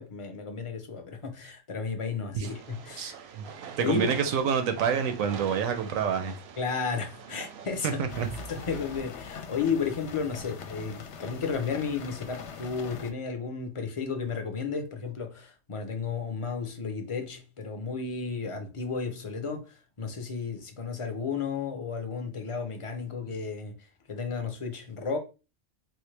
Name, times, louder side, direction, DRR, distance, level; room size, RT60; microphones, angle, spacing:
voice 1, 0.0-3.2 3.8-4.1 6.6-8.0 8.5-25.2, left 5 dB, 40° left, 0.4 m, -33 dB
Train, 2.4-9.0, right 7 dB, 65° right, 0.7 m, -44 dB
voice 2, 3.0-3.4 3.8-6.3 7.8-8.3, right 7 dB, 90° right, 1.1 m, -28 dB
sound 1, 8.1-13.1, left 5 dB, 65° left, 0.8 m, -42 dB
4.1 x 2.1 x 3.2 m
omnidirectional pair, 1.4 m